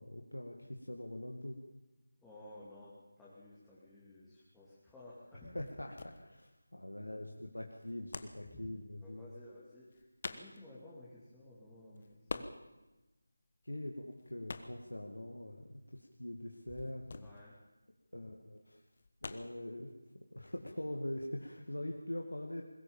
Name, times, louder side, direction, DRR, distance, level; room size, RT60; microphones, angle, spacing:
voice 1, 0.0-1.6 5.4-9.2 13.6-17.3 18.1-18.8 19.2-22.6, left 1 dB, 85° left, 2 dB, 2.2 m, -43 dB
voice 2, 2.2-5.6 8.5-8.7 9.0-12.5 16.7-16.9 17.2-17.5, left 1 dB, 5° left, -10 dB, 2.9 m, -55 dB
sound 1, 4.2-20.4, left 3 dB, 45° left, 1.3 m, -49 dB
21.5 x 19.0 x 7.3 m, 1.1 s
figure-of-eight pair, 165°, 0 cm